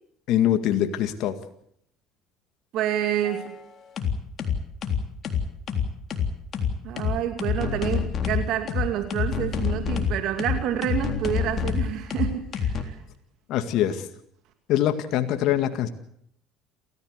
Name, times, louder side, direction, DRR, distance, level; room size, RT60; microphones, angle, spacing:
voice 1, 0.3-1.4 13.5-14.1 14.7-15.9, left 11 dB, 65° left, 8 dB, 1.9 m, -23 dB
voice 2, 2.7-3.6 6.8-13.0, right 11 dB, 65° right, 7 dB, 2.5 m, -28 dB
sound 1, 3.2-3.5 4.0-12.8, left 7 dB, 45° left, 3.6 m, -26 dB
29.0 x 14.5 x 8.2 m, 0.72 s
supercardioid pair, 95°, 0 cm